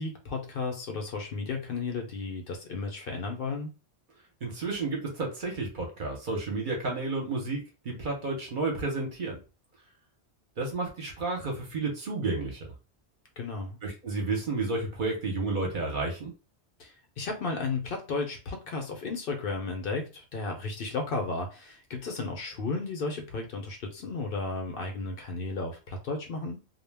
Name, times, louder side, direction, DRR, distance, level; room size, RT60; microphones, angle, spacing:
voice 1, 0.0-3.7 13.4-13.8 16.8-26.6, left 3 dB, 60° left, 3 dB, 0.7 m, -34 dB
voice 2, 4.4-9.4 10.6-12.7 13.8-16.3, right 3 dB, 50° right, 1 dB, 0.8 m, -31 dB
2.2 x 2.1 x 3.2 m, 0.31 s
omnidirectional pair, 1.1 m